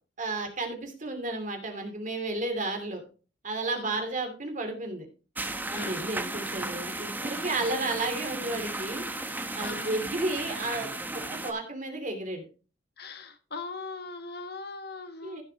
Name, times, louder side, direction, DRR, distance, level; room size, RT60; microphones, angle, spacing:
voice 1, 0.2-3.0 3.4-5.1 5.7-9.0 9.5-12.4 15.2-15.4, right 2 dB, 40° right, 5 dB, 2.7 m, -32 dB
sound 1, 5.3-11.5, right 2 dB, 10° right, 0.9 m, -35 dB
voice 2, 5.7-6.0 9.6-10.0 13.0-15.4, left 3 dB, 55° left, 8 dB, 1.3 m, -40 dB
15.0 x 6.8 x 2.9 m, 0.35 s
head